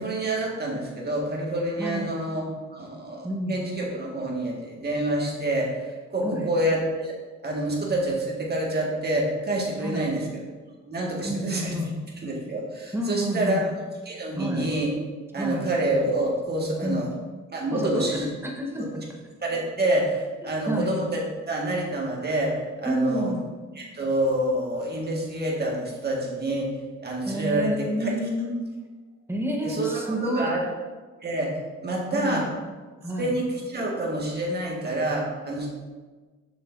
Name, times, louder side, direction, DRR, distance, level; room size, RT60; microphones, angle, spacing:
voice 1, 0.0-2.4 2.7-5.7 6.1-7.1 7.4-10.2 10.9-11.7 12.2-13.6 14.1-14.9 15.3-17.1 17.5-18.3 19.4-21.2 21.5-23.3 23.8-26.7 27.0-27.7 28.0-28.1 29.6-30.6 31.2-31.5 31.8-32.4 33.2-35.7, right 1 dB, 35° right, -2 dB, 1.9 m, -27 dB
voice 2, 1.8-2.2 3.2-3.7 6.2-6.5 9.8-10.2 11.2-12.0 12.9-13.7 14.4-14.7 15.4-15.7 16.8-17.1 17.7-19.0 20.4-21.0 22.8-23.5 27.2-28.5 29.3-30.5 32.1-32.5 33.0-33.4, right 1 dB, 10° right, 0 dB, 1.2 m, -29 dB
6.8 x 6.6 x 2.7 m, 1.3 s
cardioid pair, 90°, 30 cm